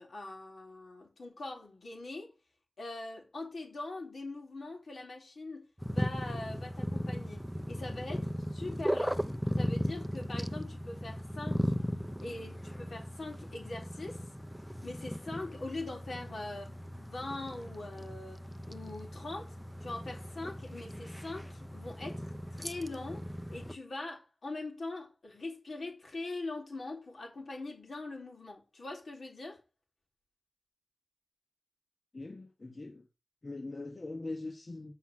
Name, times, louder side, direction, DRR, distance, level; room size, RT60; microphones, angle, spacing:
voice 1, 0.0-2.3 2.8-9.2 9.6-11.7 12.2-14.2 14.8-19.6 19.8-29.6, left 2 dB, 80° left, 4.2 m, -42 dB
sound 1, 5.8-23.8, equal, ahead, 0.8 m, -37 dB
voice 2, 32.1-33.1 33.4-34.9, left 2 dB, 50° left, 1.4 m, -41 dB
7.7 x 5.7 x 7.5 m
wide cardioid pair, 75°, 0 cm